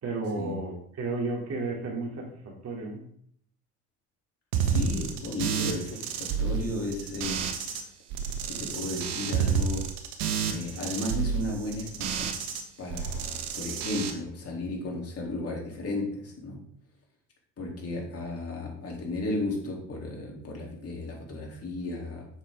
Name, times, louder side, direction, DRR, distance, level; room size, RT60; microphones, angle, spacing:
voice 1, 0.0-3.1, right 3 dB, 45° right, -1 dB, 3.5 m, -33 dB
sound 1, 4.5-7.8 8.1-12.6 12.9-14.1, right 6 dB, 80° right, 1.4 m, -30 dB
voice 2, 4.6-7.4 8.5-9.8 10.5-12.3 12.8-16.7 17.6-22.3, left 2 dB, 45° left, -1 dB, 3.7 m, -34 dB
9.0 x 6.6 x 3.9 m, 0.66 s
hypercardioid pair, 70°, 34 cm